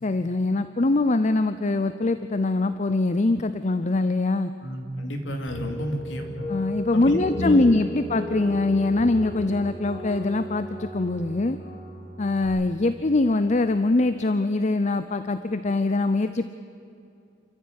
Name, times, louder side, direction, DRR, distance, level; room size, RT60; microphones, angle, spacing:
voice 1, 0.0-4.5 6.5-11.6 12.2-16.5, left 2 dB, 40° left, 11 dB, 0.6 m, -23 dB
voice 2, 4.6-6.3 6.9-7.6, left 1 dB, 85° left, 4 dB, 2.9 m, -30 dB
sound 1, 5.5-12.5, equal, 60° left, 6.7 m, -36 dB
28.0 x 14.5 x 9.4 m, 2.6 s
head